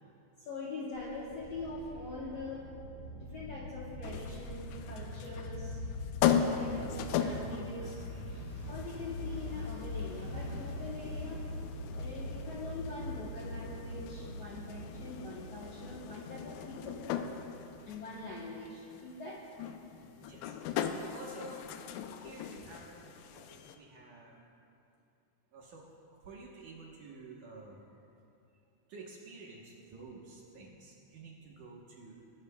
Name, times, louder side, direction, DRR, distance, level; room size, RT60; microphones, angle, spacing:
voice 1, 0.4-2.6 3.1-5.8 6.4-8.0 8.7-11.4 11.9-17.0 17.8-19.7, left 2 dB, 65° left, -5 dB, 1.6 m, -43 dB
sound 1, 0.9-11.8, equal, 30° right, 3.3 m, -50 dB
sound 2, 1.3-18.3, left 1 dB, 40° left, 3.8 m, -43 dB
sound 3, 4.0-23.8, left 8 dB, 90° left, 2.7 m, -38 dB
voice 2, 20.0-20.6 20.8-21.6 22.2-24.5 25.5-25.9 26.2-27.9 28.9-32.2, right 3 dB, 65° right, -2 dB, 2.2 m, -51 dB
24.5 x 12.5 x 2.3 m, 2.6 s
omnidirectional pair, 4.6 m